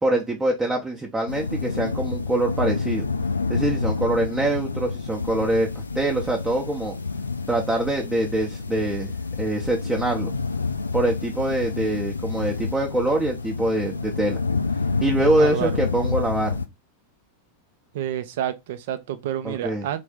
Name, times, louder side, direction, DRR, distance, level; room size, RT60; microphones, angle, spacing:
voice 1, 0.0-3.0 3.5-7.0 7.5-9.1 9.4-10.3 10.9-14.4 15.0-16.6 19.4-19.9, right 1 dB, 10° right, 0.6 m, -24 dB
sound 1, 1.3-16.7, left 4 dB, 80° left, 0.3 m, -28 dB
voice 2, 15.4-15.7 17.9-20.0, right 11 dB, 55° right, 0.5 m, -29 dB
3.2 x 2.6 x 3.6 m
figure-of-eight pair, 90°, 0 cm